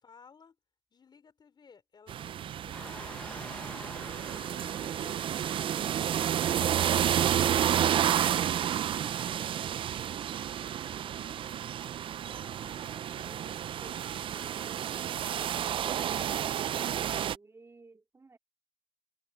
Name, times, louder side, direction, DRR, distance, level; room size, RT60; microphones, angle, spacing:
voice 1, 0.0-0.6 0.9-5.5 8.5-10.0 10.4-11.4 12.2-16.6, left 5 dB, 50° left, 3.8 m, -58 dB
sound 1, 2.1-17.4, right 10 dB, 65° right, 0.4 m, -31 dB
sound 2, 2.7-8.6, left 1 dB, 10° left, 0.9 m, -48 dB
voice 2, 17.2-18.4, right 3 dB, 30° right, 2.2 m, -57 dB
cardioid pair, 70°, 9 cm